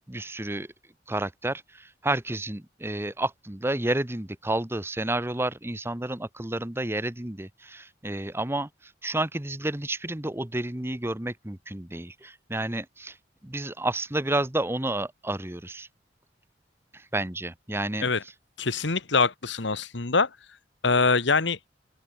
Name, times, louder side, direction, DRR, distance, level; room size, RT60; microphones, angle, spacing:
voice 1, 0.1-0.7 1.1-13.2 13.4-15.9 16.9-18.1, right 1 dB, 15° right, 1.1 m, -30 dB
voice 2, 18.6-20.3 20.8-21.6, left 4 dB, 70° left, 1.6 m, -24 dB
open air
head